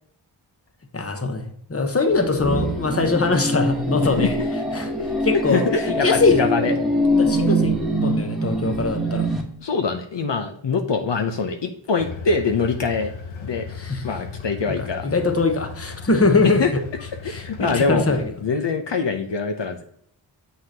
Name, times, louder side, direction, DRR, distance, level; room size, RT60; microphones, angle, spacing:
voice 1, 0.9-4.4 4.7-6.5 7.2-9.3 13.7-14.1 14.7-16.8 17.3-18.3, left 3 dB, 30° left, 6 dB, 1.0 m, -22 dB
sound 1, 2.1-9.4, equal, ahead, 1.4 m, -24 dB
voice 2, 5.5-6.7 9.6-13.1 13.4-13.7 14.0-15.1 16.4-16.7 17.2-18.0 18.4-19.8, left 4 dB, 65° left, 5 dB, 0.8 m, -23 dB
sound 2, 12.0-18.3, left 5 dB, 90° left, 1.0 m, -37 dB
7.6 x 5.6 x 2.8 m, 0.67 s
wide cardioid pair, 65°, 46 cm